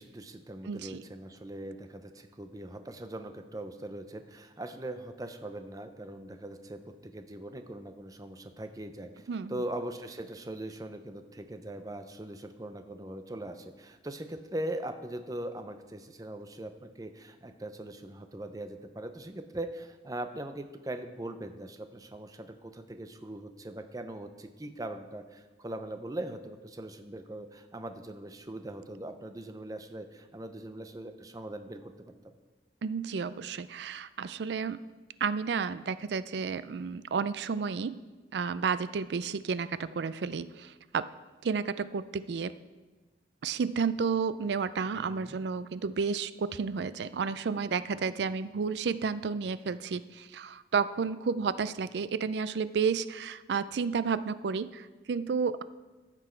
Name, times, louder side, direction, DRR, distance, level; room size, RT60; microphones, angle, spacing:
voice 1, 0.0-32.3 44.9-45.4, right 1 dB, 20° right, 8 dB, 0.6 m, -41 dB
voice 2, 0.7-1.0 9.3-9.6 32.8-34.8 35.2-37.9 38.3-41.1 41.4-42.5 43.4-55.6, right 5 dB, 75° right, 15 dB, 0.4 m, -31 dB
14.5 x 6.1 x 4.5 m, 1.3 s
head